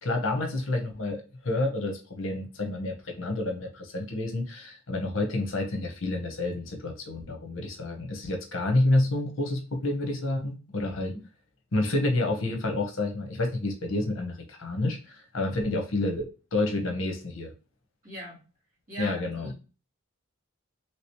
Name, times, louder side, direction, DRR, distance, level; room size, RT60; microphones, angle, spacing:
voice 1, 0.0-11.1 11.7-17.5 19.0-19.5, left 2 dB, 60° left, 3 dB, 0.8 m, -29 dB
voice 2, 10.8-11.2 18.0-18.4 18.9-19.6, right 1 dB, 40° right, -5 dB, 1.9 m, -41 dB
3.2 x 3.0 x 3.0 m, 0.33 s
head